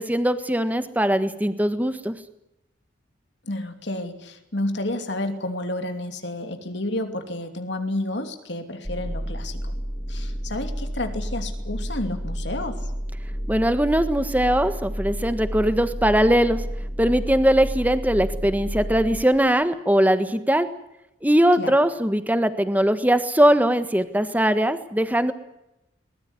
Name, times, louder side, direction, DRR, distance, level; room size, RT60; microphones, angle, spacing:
voice 1, 0.0-2.2 13.5-16.6 17.0-20.7 21.2-25.3, equal, 10° right, 11 dB, 1.5 m, -20 dB
voice 2, 3.5-9.7 10.1-12.8 21.6-21.8, left 1 dB, 60° left, 6 dB, 2.9 m, -30 dB
sound 1, 8.8-19.2, equal, 10° left, 2.3 m, -31 dB
22.0 x 20.5 x 9.8 m, 0.88 s
head